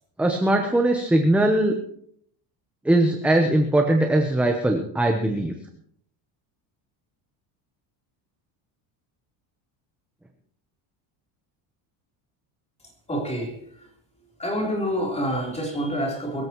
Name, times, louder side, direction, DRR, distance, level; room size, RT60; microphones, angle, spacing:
voice 1, 0.2-1.8 2.8-5.5, right 1 dB, 5° right, 3 dB, 0.8 m, -20 dB
voice 2, 13.1-13.9 14.4-16.5, equal, 15° left, 0 dB, 3.7 m, -27 dB
23.0 x 14.0 x 3.1 m, 0.67 s
cardioid pair, 170°, 49 cm